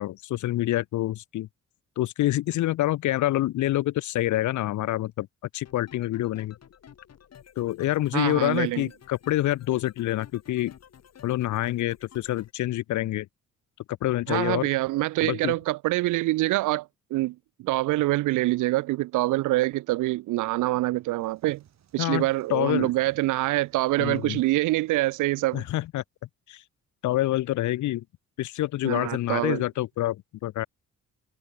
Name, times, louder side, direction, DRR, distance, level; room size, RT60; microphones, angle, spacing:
voice 1, 0.0-1.5 2.0-5.3 5.5-6.5 7.6-10.7 11.2-13.3 14.0-14.6 15.2-15.5 22.0-22.9 24.0-24.4 25.5-26.0 26.5-26.6 27.0-28.0 28.4-30.7, left 15 dB, 75° left, 0.8 m, -27 dB
sound 1, 5.6-12.5, left 8 dB, 55° left, 7.1 m, -52 dB
voice 2, 8.1-8.9 14.3-21.6 21.9-25.6 28.8-29.6, right 18 dB, 85° right, 0.6 m, -25 dB
sound 2, 20.6-25.9, right 9 dB, 60° right, 6.5 m, -61 dB
cardioid pair, 90°, 30 cm